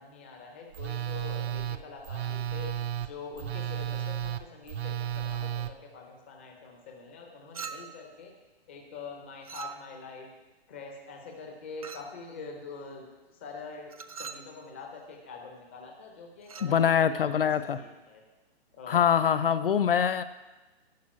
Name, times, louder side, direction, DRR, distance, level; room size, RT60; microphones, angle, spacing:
voice 1, 0.0-8.3 8.7-10.3 10.7-18.2 18.7-19.1, left 4 dB, 10° left, 1 dB, 0.6 m, -45 dB
Telephone, 0.7-5.7, right 10 dB, 80° right, 0.6 m, -33 dB
Chink clink, 7.5-8.1 9.4-10.1 11.8-12.2 13.9-14.5 16.4-16.8, right 6 dB, 35° right, 0.4 m, -42 dB
voice 2, 16.6-17.8 18.9-20.2, left 8 dB, 60° left, 12 dB, 0.6 m, -24 dB
11.5 x 5.3 x 8.6 m, 1.2 s
hypercardioid pair, 175°, 32 cm